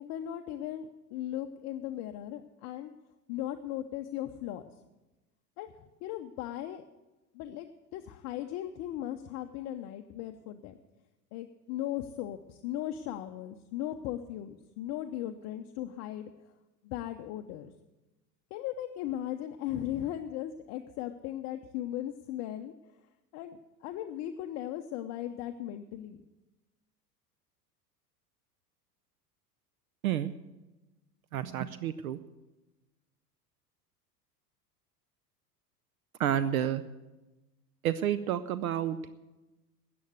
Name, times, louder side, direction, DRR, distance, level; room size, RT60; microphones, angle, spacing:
voice 1, 0.0-2.9 3.3-4.6 5.6-6.8 7.3-10.8 11.3-16.3 16.8-17.7 18.5-22.7 23.3-26.2, left 12 dB, 35° left, 7 dB, 0.7 m, -37 dB
voice 2, 31.3-32.2 36.2-36.8 37.8-39.1, right 10 dB, 60° right, 14 dB, 0.7 m, -30 dB
13.5 x 8.6 x 8.0 m, 1.1 s
figure-of-eight pair, 80°, 48 cm